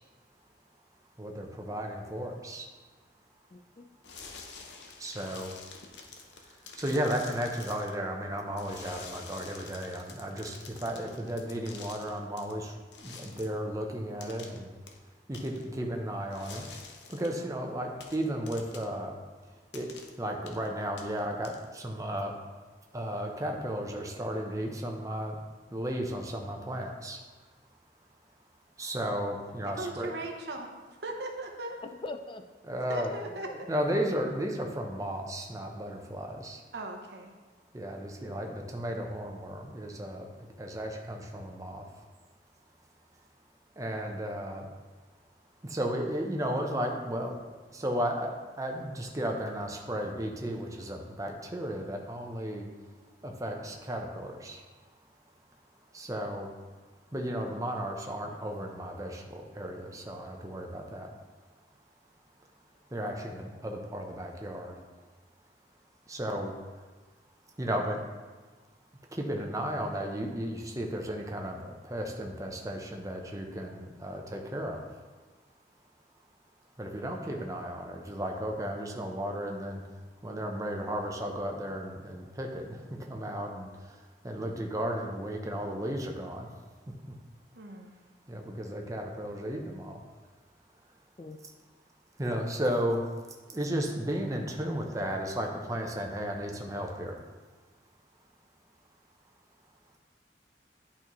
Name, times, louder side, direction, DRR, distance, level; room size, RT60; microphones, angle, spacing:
voice 1, 1.2-2.6 5.0-5.5 6.8-10.5 10.8-12.7 13.0-14.7 15.3-16.6 17.1-19.1 19.7-19.9 20.2-22.3 22.9-25.4 25.7-27.2 28.8-30.1 32.6-33.1 33.7-36.6 37.7-40.2 40.6-41.8 43.8-44.7 45.7-47.3 47.7-52.7 53.2-54.6 55.9-56.5 57.1-61.1 62.9-64.8 66.1-66.5 67.6-68.0 69.1-71.6 71.8-74.8 76.8-79.8 80.2-83.7 84.2-86.5 88.3-90.0 92.2-93.1 93.5-97.2, equal, 20° right, 2 dB, 0.7 m, -34 dB
voice 2, 3.5-3.9 31.8-32.4 33.0-33.6 91.2-91.4, left 2 dB, 30° left, 7 dB, 0.3 m, -42 dB
sound 1, 4.0-8.0 8.6-12.5 12.9-13.6 14.2-14.6 14.9-15.0 15.3-15.6 16.3-17.4 18.0-18.9 19.7-20.1 20.5-20.7 21.0-21.8, left 5 dB, 75° left, 0.7 m, -48 dB
voice 3, 29.7-30.7 31.0-31.8 32.9-33.7 36.7-37.3 87.5-87.9, right 2 dB, 70° right, 2 dB, 0.9 m, -38 dB
10.5 x 4.2 x 3.1 m, 1.3 s
head